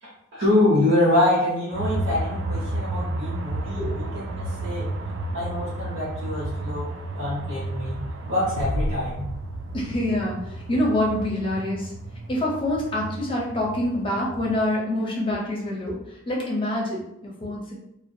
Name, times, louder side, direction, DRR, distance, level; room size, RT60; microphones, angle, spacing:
voice 1, 0.0-4.9 5.3-9.2, left 1 dB, 90° right, -10 dB, 0.9 m, -25 dB
sound 1, 1.7-14.7, right 2 dB, 70° right, 0.3 m, -32 dB
sound 2, 8.6-10.3, left 1 dB, 80° left, 0.4 m, -31 dB
voice 2, 9.7-11.9 12.3-17.7, left 1 dB, 25° left, -3 dB, 0.6 m, -26 dB
2.4 x 2.1 x 2.6 m, 0.80 s
head